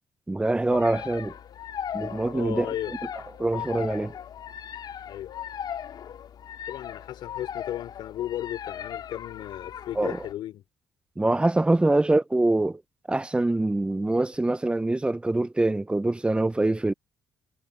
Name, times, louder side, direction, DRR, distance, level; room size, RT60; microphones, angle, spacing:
voice 1, 0.3-1.3 1.9-2.7 3.4-4.1 10.0-10.2 11.2-12.8 13.1-16.9, right 2 dB, 15° right, 0.9 m, -24 dB
sound 1, 0.7-10.3, left 9 dB, 65° left, 4.2 m, -38 dB
voice 2, 2.3-2.9 5.1-5.3 6.7-10.6, left 12 dB, 80° left, 3.6 m, -35 dB
cardioid pair, 80°, 8 cm